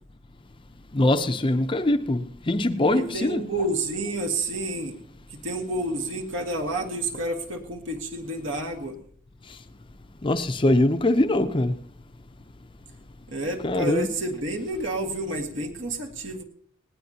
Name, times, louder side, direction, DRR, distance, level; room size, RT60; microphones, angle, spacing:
voice 1, 0.9-3.4 10.2-11.7 13.6-14.1, left 1 dB, 25° left, 0.5 m, -22 dB
voice 2, 2.9-5.0 5.3-9.0 13.3-16.4, right 1 dB, 70° right, 1.8 m, -29 dB
18.5 x 18.0 x 2.8 m
head